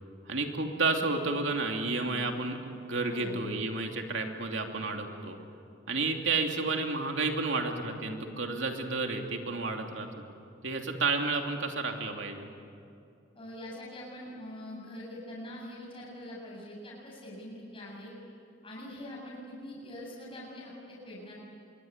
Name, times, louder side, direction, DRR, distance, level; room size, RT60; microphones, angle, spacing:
voice 1, 0.3-5.4 5.9-10.2 10.6-12.4, right 3 dB, 65° right, 3 dB, 2.8 m, -31 dB
voice 2, 3.1-3.4 13.3-18.1 18.6-21.3, left 1 dB, 30° left, -5 dB, 7.6 m, -43 dB
26.5 x 23.0 x 9.6 m, 2.5 s
head